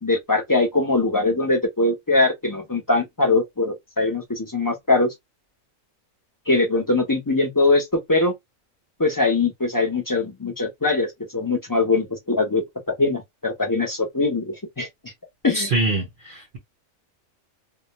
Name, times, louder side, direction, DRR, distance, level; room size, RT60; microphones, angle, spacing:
voice 1, 0.0-5.1 6.5-8.3 9.0-15.1 15.4-15.7, left 3 dB, 25° left, 0.4 m, -22 dB
voice 2, 15.5-16.6, right 2 dB, 50° right, 0.7 m, -24 dB
2.3 x 2.1 x 2.8 m
omnidirectional pair, 1.4 m